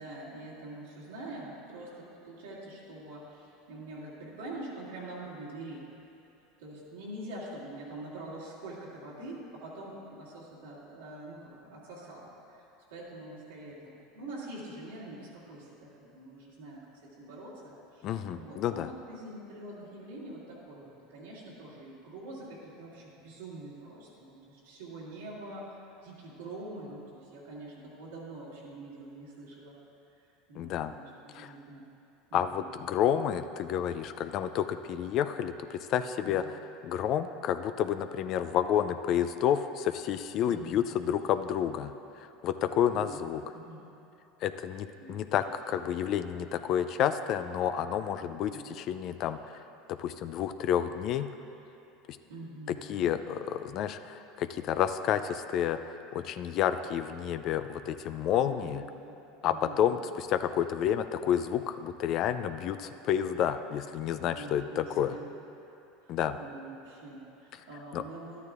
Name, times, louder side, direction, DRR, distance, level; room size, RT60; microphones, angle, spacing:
voice 1, 0.0-5.8 6.6-12.6 12.9-16.8 17.2-29.8 30.2-31.9 32.3-32.7 36.2-36.5 40.5-40.8 42.9-43.2 43.5-43.8 45.0-45.2 48.2-48.7 52.3-53.1 58.3-59.1 59.4-60.0 64.3-64.8 65.1-65.3 66.0-68.5, right 1 dB, 90° right, -8 dB, 2.0 m, -45 dB
voice 2, 18.0-18.9 30.6-30.9 31.3-31.5 32.3-36.6 36.8-43.4 44.4-49.6 49.9-51.3 52.7-58.8 59.4-65.2 66.1-66.4 67.9-68.0, left 9 dB, 55° left, 10 dB, 0.3 m, -30 dB
12.0 x 9.4 x 2.4 m, 2.8 s
hypercardioid pair, 90°, 0 cm